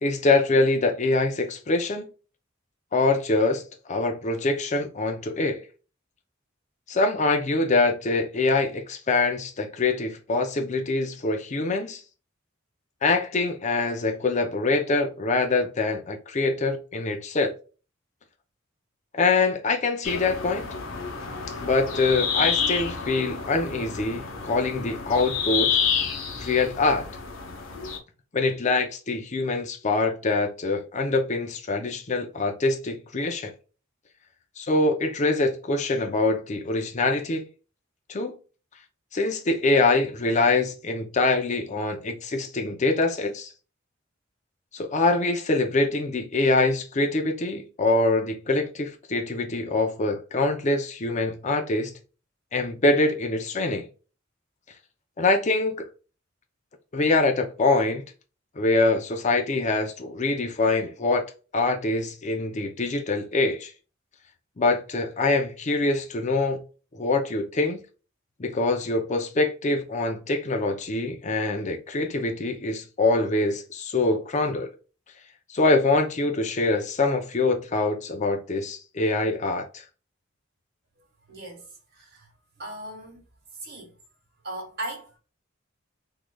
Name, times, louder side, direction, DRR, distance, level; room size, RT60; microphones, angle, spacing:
voice 1, 0.0-2.0 2.9-3.6 3.9-5.6 6.9-12.0 13.0-17.5 19.1-20.7 21.6-25.8 26.4-27.1 28.3-33.5 34.6-37.5 38.1-38.3 39.1-43.5 44.7-51.9 52.5-53.9 55.2-55.9 56.9-58.0 58.6-61.2 61.5-63.7 64.6-66.6 66.9-67.8 68.4-74.7 75.5-79.8, left 3 dB, 35° left, 0.6 m, -24 dB
sound 1, 20.0-28.0, left 6 dB, 90° left, 0.8 m, -29 dB
voice 2, 81.3-82.3 82.6-83.2 83.6-83.9 84.4-85.2, right 1 dB, 55° right, 1.6 m, -38 dB
3.7 x 3.1 x 2.2 m
head